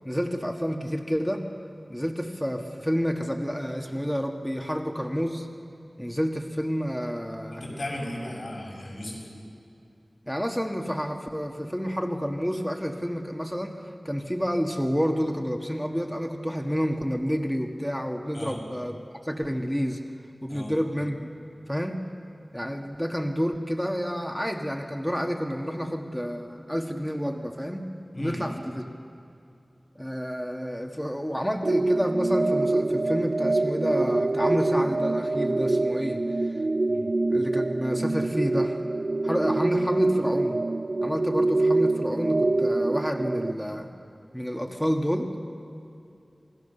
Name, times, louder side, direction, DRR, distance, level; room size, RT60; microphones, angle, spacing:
voice 1, 0.0-1.5 1.9-5.5 6.0-7.6 10.3-13.8 14.0-19.0 19.2-20.0 20.4-21.3 21.7-22.0 22.5-27.9 28.2-28.8 30.0-36.6 37.3-38.8 39.2-40.6 41.0-43.9 44.3-45.3, equal, 5° left, 2 dB, 1.7 m, -29 dB
voice 2, 7.5-9.2 18.3-18.6 20.5-20.7 28.1-28.4 36.9-37.1, left 1 dB, 75° left, -2 dB, 7.3 m, -36 dB
sound 1, 31.6-43.5, right 2 dB, 60° right, 0.5 m, -25 dB
28.0 x 19.5 x 6.9 m, 2.6 s
wide cardioid pair, 50°, 0 cm